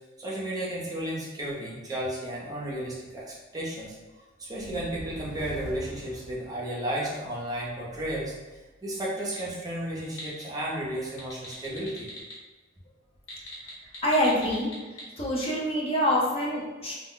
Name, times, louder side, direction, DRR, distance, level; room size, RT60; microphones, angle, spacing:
voice 1, 0.2-4.0 4.4-8.3 8.8-12.1, right 1 dB, 20° right, -5 dB, 0.6 m, -33 dB
sound 1, 4.4-7.2, right 1 dB, 80° right, 0.4 m, -43 dB
sound 2, 9.3-9.5 9.9-10.4 11.1-12.3 13.2-15.0, left 2 dB, 70° left, 0.9 m, -41 dB
voice 2, 14.0-14.7 15.2-16.9, equal, 30° left, -5 dB, 0.6 m, -25 dB
2.3 x 2.1 x 3.7 m, 1.2 s
head